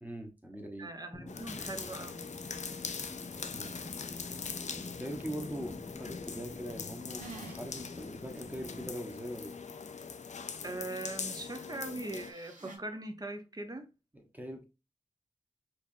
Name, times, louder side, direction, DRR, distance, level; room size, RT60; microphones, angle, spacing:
voice 1, 0.0-1.0 3.5-3.8 5.0-9.6 14.1-14.6, equal, 10° right, 1.1 m, -42 dB
voice 2, 0.8-2.4 10.6-13.9, right 2 dB, 30° right, 0.8 m, -41 dB
sound 1, 1.1-8.9, left 2 dB, 25° left, 0.7 m, -47 dB
sound 2, 1.3-12.3, left 5 dB, 65° left, 0.5 m, -42 dB
sound 3, 7.2-7.9 8.3-8.4 12.1-12.8, right 4 dB, 75° right, 1.0 m, -48 dB
4.4 x 2.6 x 2.6 m
cardioid pair, 45°, 13 cm